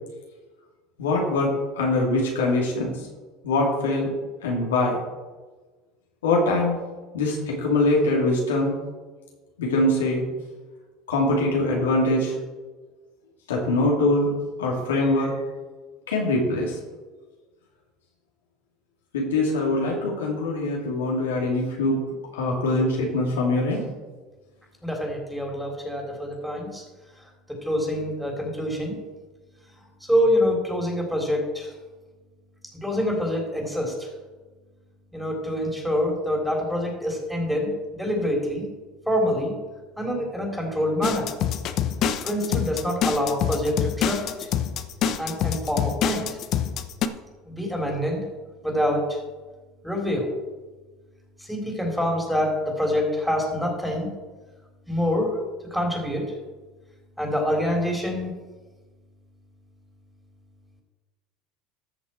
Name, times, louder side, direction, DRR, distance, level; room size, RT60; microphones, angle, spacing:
voice 1, 1.0-2.9 3.4-4.1 4.4-5.0 6.2-6.8 7.1-8.7 9.6-10.2 11.1-12.4 13.5-14.3 14.6-15.3 16.1-16.7 19.1-22.0 22.3-23.8, left 2 dB, 90° left, -1 dB, 2.6 m, -23 dB
voice 2, 24.8-26.8 27.5-29.0 30.0-31.7 32.7-34.1 35.1-38.6 39.1-39.5 40.0-41.3 42.2-44.5 45.2-46.3 47.5-48.2 48.6-49.2 49.8-50.3 51.4-54.1 54.9-55.4 55.7-56.3 57.2-58.3, equal, ahead, 0 dB, 3.6 m, -26 dB
sound 1, 41.0-47.1, left 9 dB, 55° left, 0.8 m, -26 dB
14.0 x 6.2 x 4.4 m, 1.3 s
hypercardioid pair, 85°, 0 cm